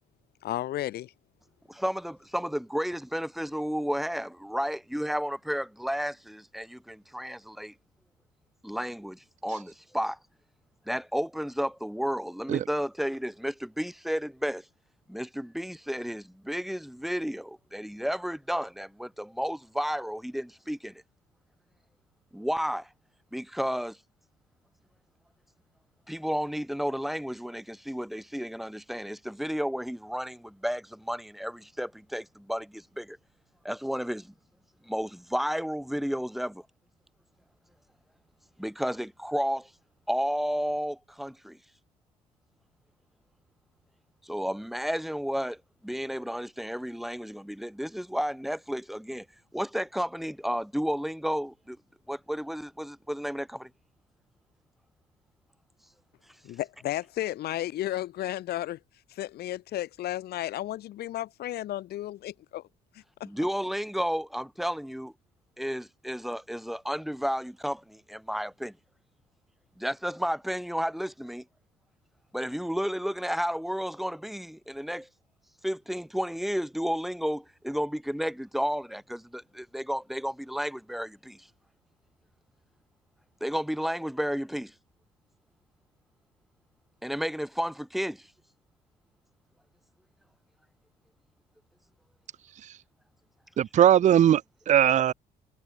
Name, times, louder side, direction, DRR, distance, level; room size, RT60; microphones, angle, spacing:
voice 1, 0.4-1.1 56.4-58.8 59.1-62.6 62.9-63.3, left 14 dB, 70° left, 4.2 m, -33 dB
voice 2, 1.7-7.7 8.6-10.2 10.9-14.6 15.1-21.0 22.3-22.9 23.3-24.0 26.1-33.2 33.6-34.3 34.8-36.6 38.6-39.7 40.1-41.6 44.2-49.2 49.5-51.8 52.1-53.7 63.2-65.1 65.6-68.8 69.8-71.4 72.3-75.1 75.6-81.5 83.4-84.7 87.0-88.3, equal, ahead, 5.2 m, -32 dB
voice 3, 93.6-95.1, right 10 dB, 45° right, 0.7 m, -20 dB
cardioid pair, 110°, 17 cm